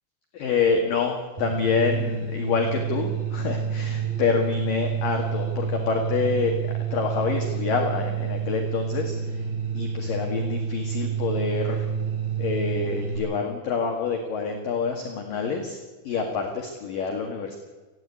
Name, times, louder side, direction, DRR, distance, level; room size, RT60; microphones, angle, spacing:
voice 1, 0.3-6.6 6.9-9.4 9.7-11.9 12.4-15.8 16.0-17.6, left 5 dB, 55° left, 3 dB, 2.8 m, -27 dB
sound 1, 1.4-13.2, right 7 dB, 45° right, 6.4 m, -29 dB
29.0 x 10.5 x 9.7 m, 1.3 s
omnidirectional pair, 5.7 m